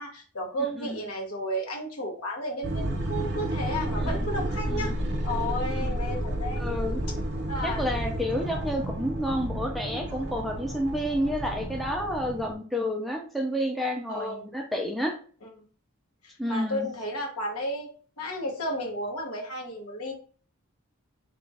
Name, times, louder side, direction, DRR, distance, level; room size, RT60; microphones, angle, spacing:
voice 1, 0.0-4.9 5.2-6.6 7.5-7.8 14.1-14.4 15.4-15.5 16.5-17.9 18.2-20.1, equal, 85° left, 0 dB, 1.0 m, -33 dB
voice 2, 0.6-1.0 4.0-4.3 4.7-4.9 5.7-6.0 6.6-7.0 7.6-15.2 16.4-16.9, equal, ahead, 2 dB, 0.4 m, -30 dB
sound 1, 2.6-12.5, right 1 dB, 50° right, 0.7 m, -31 dB
2.9 x 2.4 x 4.0 m, 0.41 s
head